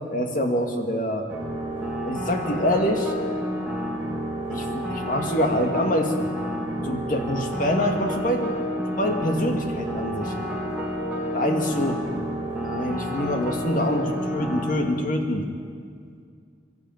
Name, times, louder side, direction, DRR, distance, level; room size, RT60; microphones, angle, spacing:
voice 1, 0.1-1.3 2.0-3.1 4.5-6.3 6.8-8.5 9.0-10.3 11.3-12.0 12.6-15.5, equal, 45° left, 4 dB, 2.2 m, -25 dB
sound 1, 1.3-14.7, equal, 5° right, 3.4 m, -29 dB
23.5 x 12.0 x 9.4 m, 2.2 s
head